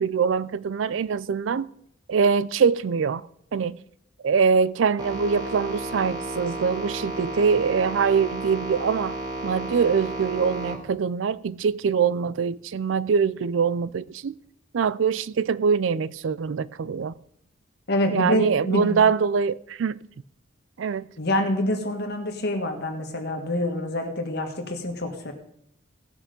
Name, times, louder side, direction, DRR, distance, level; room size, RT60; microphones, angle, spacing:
voice 1, 0.0-1.7 2.1-3.3 3.5-3.8 4.2-9.2 9.4-14.3 14.7-17.1 18.1-20.0 20.8-21.1, right 6 dB, 75° right, 0.4 m, -23 dB
sound 1, 5.0-10.8, right 1 dB, 20° right, 1.9 m, -33 dB
voice 2, 17.9-19.0 21.2-25.3, left 1 dB, 60° left, 1.7 m, -26 dB
17.0 x 6.1 x 5.2 m
head